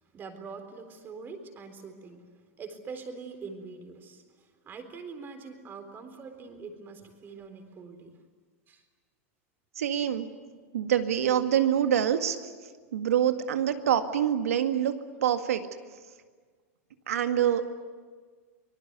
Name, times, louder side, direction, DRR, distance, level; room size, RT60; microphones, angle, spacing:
voice 1, 0.0-2.3 2.6-8.2 8.7-8.8 10.0-10.1, right 4 dB, 25° right, 7 dB, 3.9 m, -44 dB
voice 2, 9.8-10.3 10.7-12.4 12.9-15.0 15.2-15.7 17.1-17.8, right 9 dB, 90° right, 8 dB, 1.9 m, -25 dB
25.0 x 19.5 x 9.5 m, 1.5 s
supercardioid pair, 125°, 8 cm